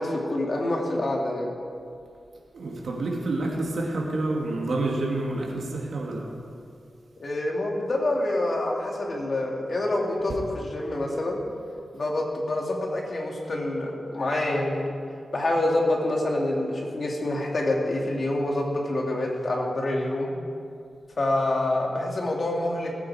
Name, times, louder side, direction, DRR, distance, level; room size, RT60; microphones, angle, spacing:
voice 1, 0.0-1.5 7.2-11.4 11.9-14.9 15.3-20.3 21.2-22.9, left 1 dB, 55° left, -1 dB, 2.5 m, -26 dB
voice 2, 2.5-6.3 10.3-10.4, right 2 dB, 80° right, -1 dB, 2.2 m, -28 dB
18.5 x 9.0 x 4.9 m, 2.4 s
wide cardioid pair, 75°, 0 cm